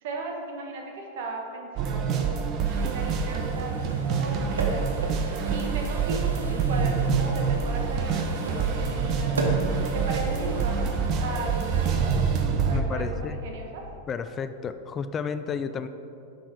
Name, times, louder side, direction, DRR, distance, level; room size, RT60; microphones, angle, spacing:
voice 1, 0.0-2.4 2.8-3.7 4.1-4.9 5.5-9.4 9.9-10.9 11.2-12.1 12.6-13.8, right 2 dB, 65° right, 1 dB, 1.3 m, -36 dB
sound 1, 1.8-12.8, right 6 dB, 40° right, 0.7 m, -26 dB
sound 2, 2.6-12.4, right 2 dB, 85° right, 1.0 m, -37 dB
voice 2, 12.7-13.4 14.1-15.9, left 6 dB, 30° left, 11 dB, 0.3 m, -32 dB
6.5 x 6.1 x 4.7 m, 2.6 s
hypercardioid pair, 95°, 0 cm